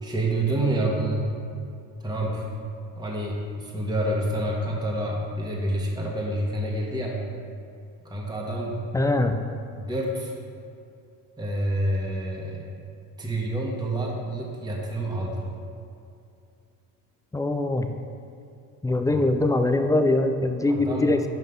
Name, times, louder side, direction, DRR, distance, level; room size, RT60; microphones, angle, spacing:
voice 1, 0.0-1.3 2.0-2.5 2.9-7.2 8.0-8.8 9.7-10.3 11.4-12.6 13.2-15.5 20.7-21.1, right 1 dB, 10° right, -3 dB, 1.4 m, -28 dB
voice 2, 8.9-9.4 17.3-17.9 18.8-21.2, left 2 dB, 10° left, 7 dB, 0.3 m, -22 dB
5.8 x 5.3 x 5.5 m, 2.5 s
hypercardioid pair, 70°, 46 cm